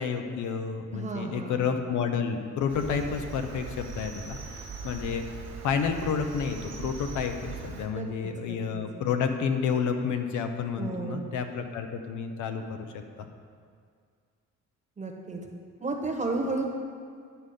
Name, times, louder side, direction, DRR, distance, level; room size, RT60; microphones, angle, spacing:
voice 1, 0.0-5.2 5.6-13.2, left 6 dB, 80° left, 6 dB, 0.8 m, -30 dB
voice 2, 0.9-1.6 7.9-8.8 10.8-11.3 15.0-15.4 15.8-16.7, right 3 dB, 25° right, 2 dB, 1.2 m, -33 dB
Cricket, 2.7-7.9, right 5 dB, 55° right, 1.3 m, -40 dB
10.5 x 3.8 x 6.5 m, 2.1 s
cardioid pair, 90°, 30 cm